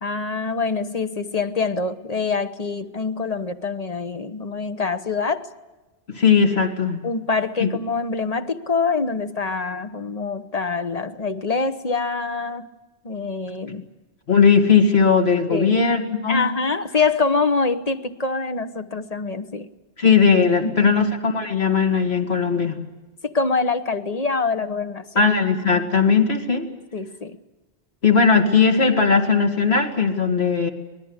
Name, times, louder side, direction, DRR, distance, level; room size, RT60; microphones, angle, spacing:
voice 1, 0.0-5.5 7.0-12.7 13.0-13.8 15.5-15.7 16.3-19.7 20.6-20.9 23.2-25.3 26.9-27.4, left 4 dB, 35° left, 9 dB, 1.0 m, -25 dB
voice 2, 6.1-7.0 7.6-7.7 14.3-16.5 20.0-22.8 25.2-26.7 28.0-30.7, left 5 dB, 65° left, 3 dB, 2.6 m, -18 dB
25.5 x 19.0 x 8.1 m, 1.1 s
omnidirectional pair, 1.1 m